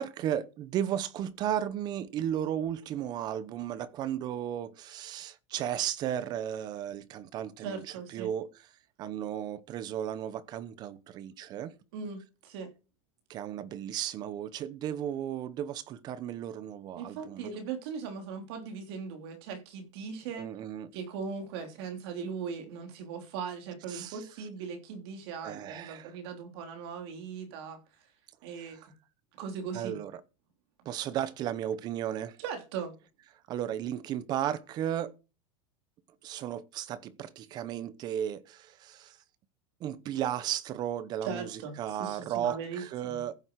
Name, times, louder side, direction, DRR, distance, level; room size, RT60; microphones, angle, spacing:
voice 1, 0.0-8.7 9.0-11.7 13.3-17.5 20.4-20.9 23.9-24.2 25.4-26.2 28.6-28.9 29.7-30.2 30.8-32.4 33.5-35.1 36.2-39.2 39.8-43.3, right 10 dB, 25° right, 0.8 m, -35 dB
voice 2, 7.6-8.3 11.9-12.7 17.0-20.5 20.9-27.8 28.4-28.9 29.4-30.0 32.4-32.9 41.2-43.2, right 6 dB, 50° right, 3.3 m, -39 dB
15.0 x 7.7 x 4.7 m
supercardioid pair, 175°, 16 cm